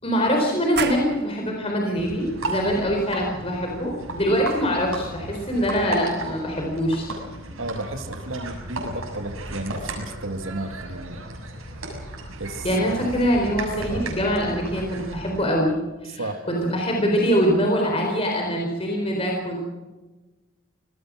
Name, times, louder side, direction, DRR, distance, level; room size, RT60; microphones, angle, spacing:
voice 1, 0.0-7.1 12.6-19.6, equal, 30° left, 0 dB, 4.2 m, -23 dB
sound 1, 0.8-6.1, right 7 dB, 50° right, 1.5 m, -38 dB
sound 2, 2.0-15.5, right 2 dB, 90° right, 6.8 m, -35 dB
voice 2, 7.6-11.5 12.4-13.0 13.9-14.1 16.1-16.4, right 2 dB, 70° right, 6 dB, 2.2 m, -33 dB
26.0 x 19.0 x 6.3 m, 1.2 s
head